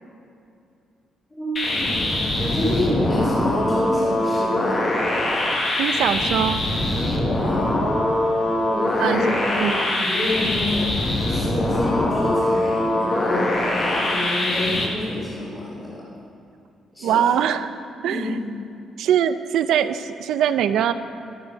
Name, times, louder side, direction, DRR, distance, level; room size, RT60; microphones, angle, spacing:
voice 1, 1.3-2.1 2.4-4.9 7.2-7.8 8.7-9.3 9.6-16.0 16.9-17.2 18.0-18.4, left 1 dB, 10° left, -10 dB, 2.6 m, -28 dB
sound 1, 1.6-14.9, left 1 dB, 30° left, 1.6 m, -23 dB
voice 2, 5.8-6.6 9.0-9.2 9.6-9.8 17.0-18.4 19.0-20.9, right 9 dB, 80° right, 11 dB, 0.5 m, -22 dB
12.5 x 9.5 x 5.7 m, 2.6 s
cardioid pair, 170°, 0 cm